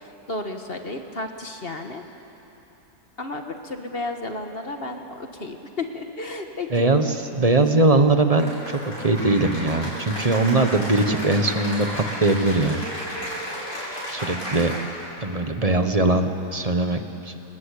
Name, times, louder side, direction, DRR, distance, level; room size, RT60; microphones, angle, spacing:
voice 1, 0.0-2.0 3.2-6.9 7.6-7.7 10.5-10.6, left 2 dB, 35° left, 5 dB, 1.6 m, -33 dB
voice 2, 6.7-12.8 14.1-14.7 15.2-17.3, right 2 dB, 25° right, 7 dB, 1.0 m, -21 dB
Cheering / Applause, 8.4-15.1, equal, 50° left, 8.0 m, -33 dB
28.5 x 19.0 x 8.4 m, 3.0 s
omnidirectional pair, 1.8 m